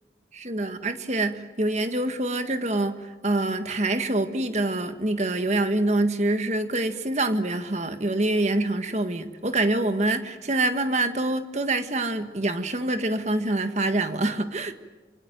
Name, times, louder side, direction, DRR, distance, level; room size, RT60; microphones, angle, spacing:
voice 1, 0.3-14.7, right 2 dB, 40° right, 8 dB, 1.6 m, -25 dB
26.5 x 24.5 x 9.1 m, 1.3 s
head